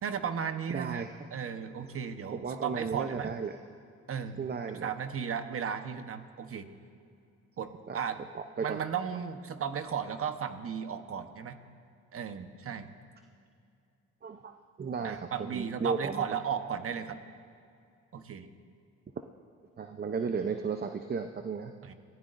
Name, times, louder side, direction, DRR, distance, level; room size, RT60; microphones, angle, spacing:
voice 1, 0.0-1.0 1.3-3.3 4.1-4.4 4.7-6.7 7.6-8.2 8.6-11.6 12.1-12.9 15.0-17.2 18.1-18.5 21.8-21.9, right 7 dB, 50° right, 8 dB, 1.1 m, -35 dB
voice 2, 0.7-1.2 2.3-3.6 4.4-4.9 7.9-8.0 8.3-8.8 14.2-14.5 14.8-16.2 19.8-21.7, right 5 dB, 35° right, 6 dB, 0.7 m, -34 dB
24.0 x 15.5 x 2.6 m, 2.4 s
cardioid pair, 90°, 30 cm